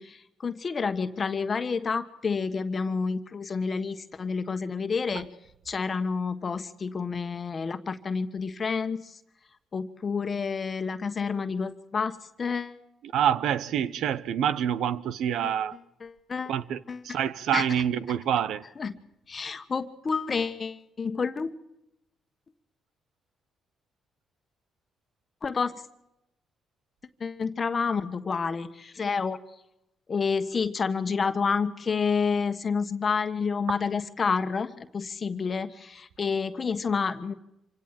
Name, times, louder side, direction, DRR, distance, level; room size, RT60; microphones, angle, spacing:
voice 1, 0.0-5.3 5.7-9.2 9.7-12.8 15.4-15.5 16.0-16.5 16.9-17.0 17.5-17.6 18.8-19.0 19.3-21.5 25.4-25.7 27.2-29.4 30.1-37.3, left 5 dB, 40° left, 1.4 m, -29 dB
voice 2, 13.0-15.8 16.5-18.6, right 9 dB, 80° right, 1.0 m, -27 dB
26.5 x 17.0 x 7.6 m
cardioid pair, 90°, 0 cm